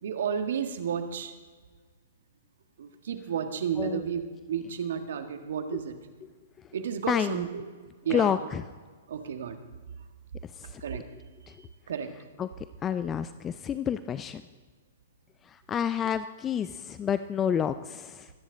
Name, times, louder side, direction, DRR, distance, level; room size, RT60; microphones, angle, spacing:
voice 1, 0.0-1.3 2.8-5.9 6.7-7.6 8.0-8.3 9.1-9.6 10.8-11.0 11.9-12.1, right 7 dB, 65° right, 6 dB, 1.7 m, -32 dB
voice 2, 7.1-7.4 8.1-8.6 10.4-10.8 11.5-11.6 12.4-12.5 12.8-14.4 15.4-18.3, left 8 dB, 20° left, 13 dB, 0.5 m, -29 dB
24.0 x 10.0 x 3.9 m, 1.5 s
hypercardioid pair, 115°, 0 cm